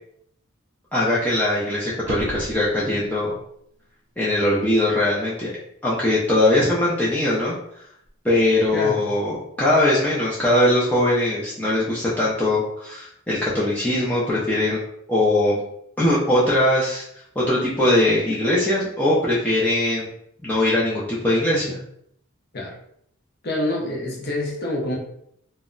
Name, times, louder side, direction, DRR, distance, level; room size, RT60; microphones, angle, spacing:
voice 1, 0.9-3.3 4.2-5.5 5.8-7.5 8.2-14.8 15.1-15.6 16.0-17.0 17.4-20.1 20.4-21.8, left 1 dB, 5° left, -8 dB, 0.4 m, -21 dB
sound 1, 1.9-3.2 8.1-8.2, right 1 dB, 70° right, 0.5 m, -34 dB
voice 2, 23.4-25.0, left 1 dB, 50° left, -3 dB, 0.6 m, -26 dB
2.1 x 2.0 x 3.7 m, 0.71 s
head